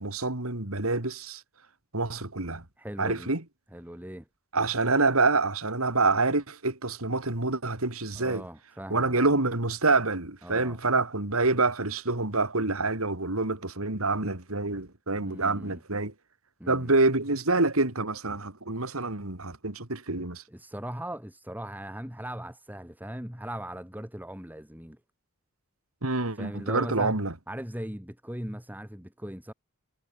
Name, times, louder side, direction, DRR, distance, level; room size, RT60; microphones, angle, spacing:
voice 1, 0.0-1.4 1.9-2.6 3.0-3.4 4.5-8.4 8.9-16.1 16.7-20.4 26.0-27.3, right 3 dB, 80° right, 3.2 m, -27 dB
voice 2, 2.8-3.3 3.7-4.3 8.2-9.3 10.4-10.8 15.1-15.8 16.6-16.9 20.5-25.0 26.3-29.5, equal, 10° right, 3.1 m, -39 dB
head